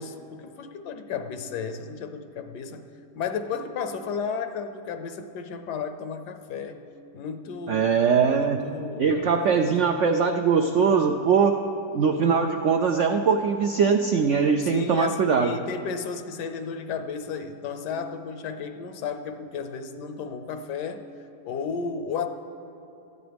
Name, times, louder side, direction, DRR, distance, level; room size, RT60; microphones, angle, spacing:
voice 1, 0.0-2.9 3.1-6.9 7.1-9.9 14.6-21.0 21.4-22.3, left 6 dB, 75° left, 8 dB, 1.3 m, -33 dB
voice 2, 7.7-8.6 9.0-11.6 11.9-15.5, right 6 dB, 75° right, 4 dB, 0.6 m, -21 dB
18.0 x 13.5 x 3.5 m, 2.8 s
omnidirectional pair, 1.8 m